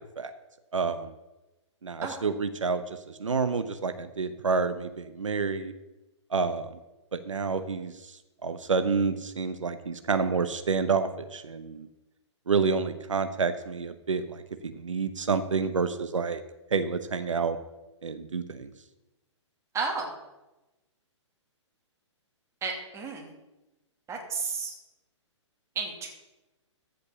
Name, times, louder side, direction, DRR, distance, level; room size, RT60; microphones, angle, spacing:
voice 1, 0.7-1.1 1.8-5.7 6.3-6.7 7.1-11.9 12.5-16.4 16.7-17.6 18.0-18.7, right 5 dB, 90° right, 10 dB, 0.8 m, -29 dB
voice 2, 19.7-20.1 22.6-23.3 24.1-24.7 25.7-26.1, right 4 dB, 20° right, 1 dB, 2.6 m, -32 dB
14.0 x 5.4 x 6.8 m, 1.0 s
hypercardioid pair, 130°, 16 cm